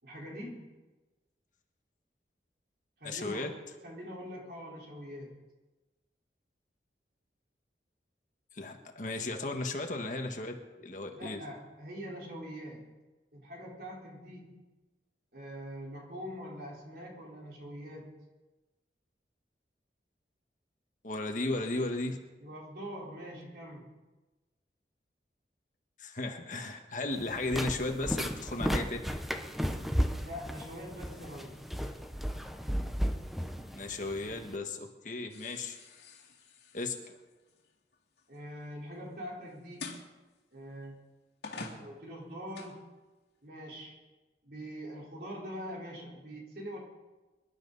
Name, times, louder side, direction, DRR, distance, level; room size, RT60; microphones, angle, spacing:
voice 1, 0.0-0.8 3.0-3.5 3.8-5.4 11.1-12.9 13.3-14.6 15.3-18.1 22.4-23.9 30.2-31.6 38.3-40.0 40.5-41.0 41.8-42.8 43.4-43.9 44.4-46.8, equal, 60° right, -3 dB, 4.4 m, -43 dB
voice 2, 3.0-3.5 8.5-11.4 21.0-22.2 26.0-29.0 33.7-35.8 36.7-37.2, left 2 dB, 45° left, 4 dB, 1.6 m, -35 dB
sound 1, 27.1-34.5, equal, ahead, 0.8 m, -34 dB
sound 2, 35.3-38.4 39.8-40.1 40.8-40.9 41.4-42.8, left 3 dB, 70° left, 2.5 m, -46 dB
25.5 x 12.0 x 4.1 m, 1.2 s
head